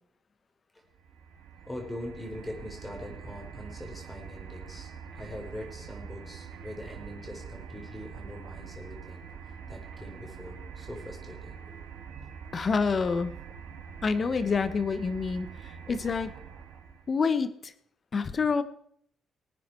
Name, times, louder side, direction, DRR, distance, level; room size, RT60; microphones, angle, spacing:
sound 1, 0.9-17.1, right 7 dB, 75° right, 1.5 m, -44 dB
voice 1, 1.7-9.2 9.5-11.8, left 1 dB, 10° left, 2 dB, 3.9 m, -42 dB
voice 2, 12.5-13.3 14.0-16.3 17.1-17.7 18.1-18.6, left 5 dB, 40° left, 13 dB, 1.2 m, -27 dB
20.5 x 9.1 x 4.5 m, 0.68 s
cardioid pair, 90°, 0 cm